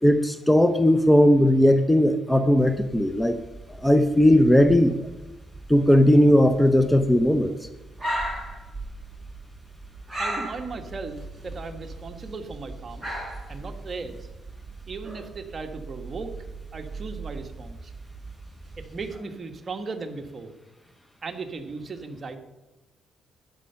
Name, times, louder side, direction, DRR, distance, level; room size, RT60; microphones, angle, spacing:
voice 1, 0.0-3.4 3.8-5.0 5.7-7.7, equal, 5° left, 9 dB, 0.8 m, -18 dB
sound 1, 2.6-19.2, right 2 dB, 10° right, 4.1 m, -38 dB
voice 2, 10.2-13.1 13.5-14.3 14.9-16.3 16.7-17.9 18.8-20.5 21.2-22.4, right 4 dB, 35° right, 5 dB, 1.6 m, -37 dB
12.5 x 10.5 x 5.8 m, 1.0 s
cardioid pair, 90°, 0 cm